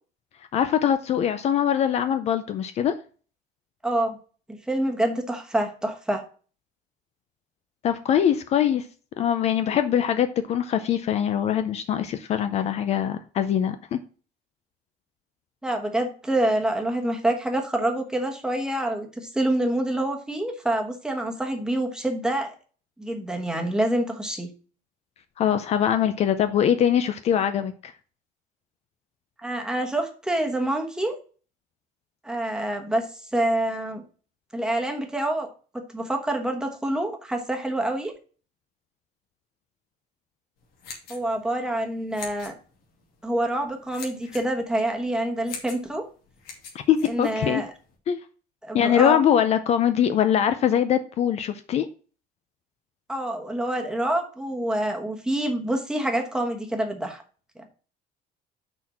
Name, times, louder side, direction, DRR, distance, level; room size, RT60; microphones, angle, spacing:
voice 1, 0.5-2.9 7.8-8.8 9.2-14.0 25.4-27.9 46.9-47.6 48.1-48.2 48.7-51.9, left 9 dB, 45° left, 0.5 m, -22 dB
voice 2, 3.8-4.2 4.7-6.2 15.6-22.5 23.0-24.5 29.4-31.2 32.2-33.1 33.3-34.0 34.5-35.5 35.7-38.1 41.1-42.6 43.2-46.1 47.0-47.7 48.6-49.2 53.1-57.2 57.6-57.7, right 1 dB, 5° right, 1.1 m, -26 dB
sound 1, 40.6-47.9, left 5 dB, 85° left, 2.5 m, -44 dB
6.2 x 4.4 x 5.9 m
cardioid pair, 165°, 16 cm